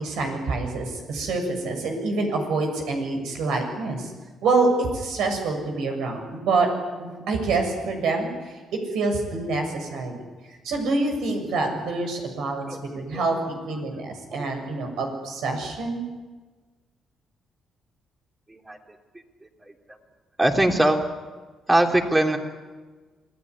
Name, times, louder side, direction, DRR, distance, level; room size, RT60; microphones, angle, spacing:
voice 1, 0.0-4.1 4.4-6.7 7.0-10.2 10.6-12.7 12.9-13.4 13.6-16.1, right 3 dB, 80° right, 4 dB, 7.2 m, -26 dB
voice 2, 20.4-21.0 21.7-22.4, right 1 dB, 15° right, 3 dB, 3.4 m, -21 dB
27.0 x 18.0 x 9.9 m, 1.3 s
cardioid pair, 90°, 0 cm